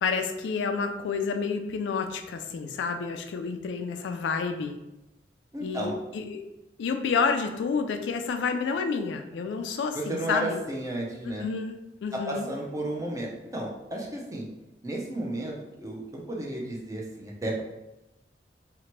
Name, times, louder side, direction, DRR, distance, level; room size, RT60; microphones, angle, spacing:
voice 1, 0.0-4.8 5.6-6.4 6.8-10.6 11.2-12.5, left 5 dB, 75° left, 6 dB, 0.3 m, -29 dB
voice 2, 5.5-6.0 9.9-11.5 12.1-14.5 14.8-17.6, right 1 dB, 20° right, -2 dB, 0.5 m, -33 dB
2.8 x 2.1 x 2.9 m, 0.94 s
head